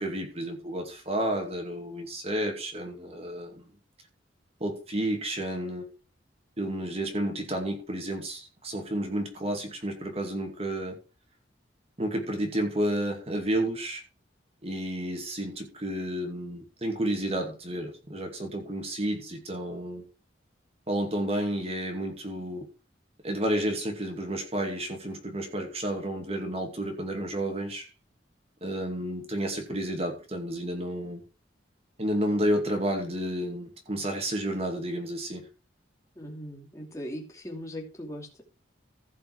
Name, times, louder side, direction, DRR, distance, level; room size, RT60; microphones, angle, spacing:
voice 1, 0.0-3.7 4.6-5.9 6.6-11.0 12.0-14.0 14.6-20.1 20.9-22.7 23.2-27.9 28.6-31.2 32.0-35.4, right 1 dB, 30° right, 3 dB, 2.4 m, -31 dB
voice 2, 36.2-38.4, equal, 15° left, 0 dB, 2.7 m, -39 dB
15.5 x 5.6 x 4.8 m, 0.32 s
head